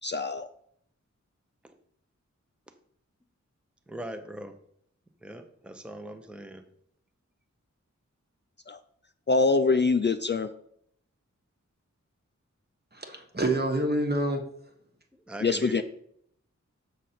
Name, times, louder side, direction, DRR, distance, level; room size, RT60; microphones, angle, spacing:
voice 1, 0.0-0.5 8.7-8.8 9.3-10.5 15.4-15.8, left 4 dB, 40° left, 0.4 m, -24 dB
voice 2, 3.9-4.5 5.2-6.6 15.3-15.8, right 1 dB, 5° right, 0.7 m, -40 dB
voice 3, 12.9-14.4, right 1 dB, 35° right, 1.2 m, -27 dB
6.6 x 6.3 x 4.2 m
wide cardioid pair, 75°, 29 cm